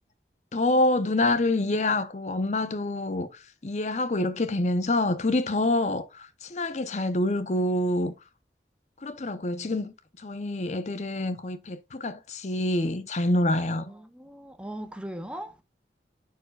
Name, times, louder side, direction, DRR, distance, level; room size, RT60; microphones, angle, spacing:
voice 1, 0.5-8.1 9.0-9.9 10.2-13.9, left 2 dB, 40° left, 0.7 m, -26 dB
voice 2, 13.6-15.6, right 1 dB, 5° right, 0.8 m, -39 dB
10.5 x 4.7 x 2.3 m
head